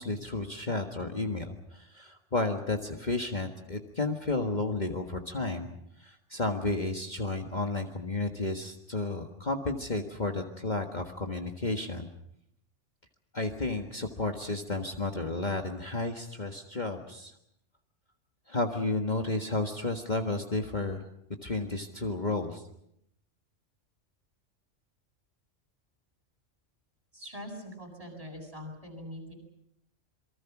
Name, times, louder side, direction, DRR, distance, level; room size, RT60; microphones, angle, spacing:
voice 1, 0.0-5.7 6.0-12.1 13.3-17.3 18.5-21.0 21.4-22.6, left 2 dB, 35° left, 3 dB, 1.7 m, -32 dB
voice 2, 27.1-29.3, equal, 30° right, 3 dB, 7.6 m, -43 dB
27.5 x 23.5 x 6.0 m, 0.76 s
omnidirectional pair, 1.3 m